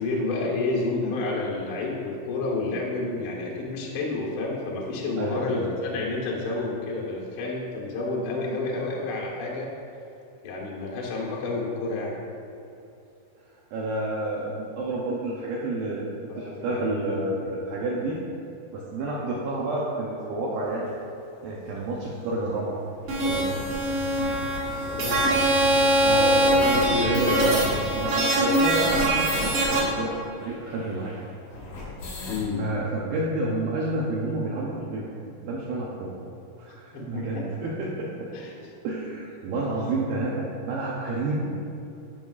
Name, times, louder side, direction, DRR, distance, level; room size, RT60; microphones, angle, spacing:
voice 1, 0.0-9.7 10.4-12.2 16.3-17.6 24.8-25.4 25.8-26.1 26.4-27.5 32.3-32.6 36.7-37.7 38.3-38.7, left 3 dB, 90° left, -4 dB, 1.2 m, -30 dB
voice 2, 5.2-5.9 13.7-18.2 18.7-20.9 21.4-22.8 23.1-23.7 26.0-27.7 27.9-31.1 32.6-35.1 35.4-36.1 36.6-38.3 38.8-41.4, right 2 dB, 80° right, -4 dB, 1.9 m, -29 dB
sound 1, 20.9-21.0 21.7-21.8 22.0-22.1 22.4-22.5 22.9-29.6 29.8-29.9 30.1-32.5, left 2 dB, 65° left, 3.1 m, -38 dB
sound 2, 23.1-29.8, right 1 dB, 60° right, 1.4 m, -23 dB
11.5 x 5.5 x 2.4 m, 2.7 s
omnidirectional pair, 4.5 m